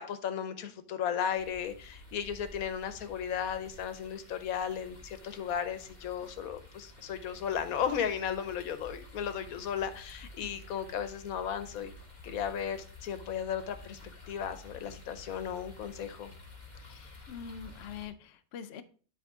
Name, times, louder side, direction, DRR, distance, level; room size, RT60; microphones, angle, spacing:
voice 1, 0.0-11.9 12.2-14.0 14.3-16.3, left 8 dB, 85° left, 10 dB, 1.2 m, -35 dB
sound 1, 1.3-18.1, left 2 dB, 30° left, 1.7 m, -51 dB
voice 2, 16.8-18.8, left 7 dB, 60° left, 9 dB, 0.7 m, -44 dB
9.5 x 4.3 x 3.6 m, 0.41 s
omnidirectional pair, 1.5 m